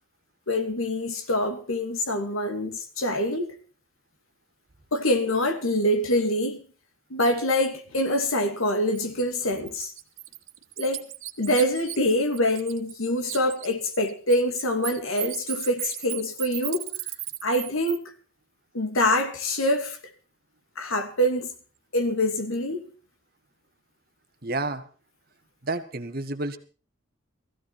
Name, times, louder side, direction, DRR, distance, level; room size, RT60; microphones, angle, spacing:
voice 1, 0.5-3.5 4.9-6.6 7.1-9.9 10.8-11.1 11.4-16.9 17.4-18.1 18.7-20.0 20.8-21.5 21.9-22.9, left 1 dB, 85° left, 2.6 m, -25 dB
Bird, 8.9-9.1 9.5-13.0 13.2-18.0, right 15 dB, 75° right, 1.7 m, -35 dB
voice 2, 24.4-24.9 25.6-26.6, right 2 dB, 45° right, 1.4 m, -30 dB
17.0 x 15.5 x 4.4 m
head